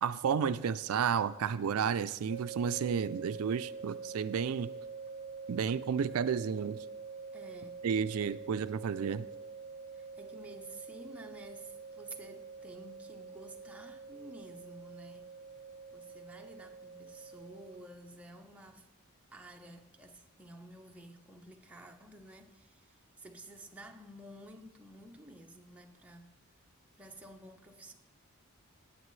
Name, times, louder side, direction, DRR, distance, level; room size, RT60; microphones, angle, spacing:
voice 1, 0.0-4.7 5.5-6.8 7.8-9.3, right 7 dB, 75° right, 0.4 m, -32 dB
sound 1, 2.3-17.8, right 5 dB, 50° left, 1.0 m, -46 dB
voice 2, 7.3-7.9 8.2-8.6 9.9-15.3 15.9-18.9 19.3-26.4 26.9-27.9, right 1 dB, 5° right, 0.8 m, -52 dB
17.5 x 7.5 x 3.2 m
head